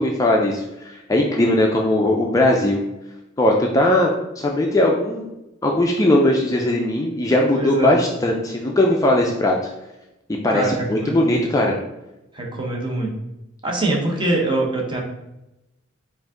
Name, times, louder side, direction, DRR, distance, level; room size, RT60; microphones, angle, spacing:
voice 1, 0.0-2.8 3.4-4.1 4.4-5.3 5.6-9.7 10.4-11.8, left 1 dB, 15° left, 0 dB, 0.3 m, -19 dB
voice 2, 7.5-8.0 10.5-11.4 12.3-13.1 13.6-15.0, right 2 dB, 25° right, 0 dB, 0.8 m, -23 dB
4.9 x 2.5 x 3.6 m, 0.94 s
head